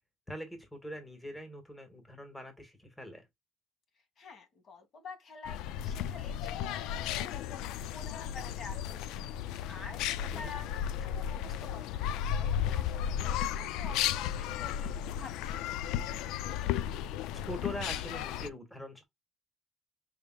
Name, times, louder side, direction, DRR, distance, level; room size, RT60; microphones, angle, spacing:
voice 1, 0.3-3.3 10.3-10.5 14.4-14.5 17.4-19.0, equal, 10° left, 1.6 m, -43 dB
voice 2, 4.2-15.8, left 4 dB, 50° left, 2.0 m, -49 dB
sound 1, 5.5-18.5, left 10 dB, 85° left, 0.3 m, -34 dB
5.6 x 3.4 x 2.3 m
cardioid pair, 100°, 0 cm